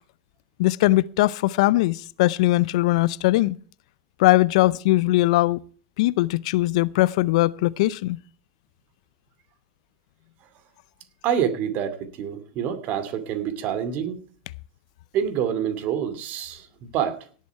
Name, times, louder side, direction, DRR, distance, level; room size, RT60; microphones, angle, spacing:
voice 1, 0.6-3.6 4.2-5.6 6.0-8.2, left 18 dB, 65° left, 0.5 m, -20 dB
voice 2, 11.2-14.2 15.1-17.2, right 9 dB, 50° right, 2.5 m, -27 dB
17.5 x 8.5 x 4.6 m
hypercardioid pair, 100°, 4 cm